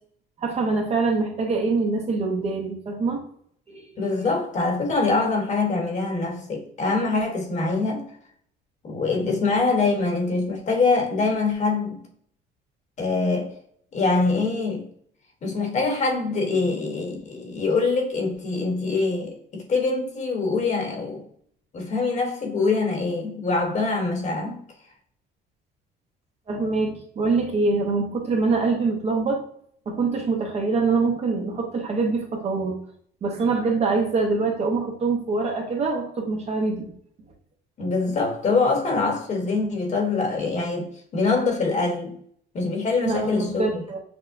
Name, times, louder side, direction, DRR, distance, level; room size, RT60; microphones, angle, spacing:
voice 1, 0.4-3.2 3.7-3.9 26.5-29.4 29.9-32.8 33.2-36.9 43.0-44.0, right 3 dB, 35° right, 2 dB, 0.7 m, -24 dB
voice 2, 4.0-8.1 8.8-12.0 13.0-13.6 13.9-14.8 15.4-21.2 21.7-24.6 37.8-42.1 42.5-43.8, left 3 dB, 40° left, 1 dB, 1.1 m, -24 dB
6.0 x 2.1 x 2.5 m, 0.63 s
cardioid pair, 120°, 19 cm